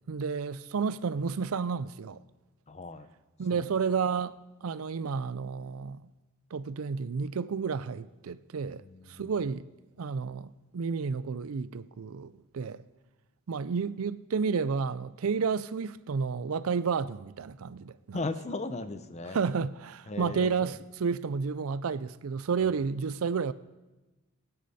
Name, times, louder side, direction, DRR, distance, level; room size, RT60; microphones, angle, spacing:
voice 1, 0.1-2.2 3.4-4.3 4.6-6.0 6.5-8.8 9.1-9.6 10.0-12.8 13.5-18.2 19.3-23.5, right 5 dB, 90° right, 0.5 m, -31 dB
voice 2, 2.7-3.1 3.5-3.7 8.8-9.2 18.1-19.4 20.1-20.7, left 2 dB, 30° left, 0.7 m, -37 dB
22.0 x 9.7 x 4.2 m
head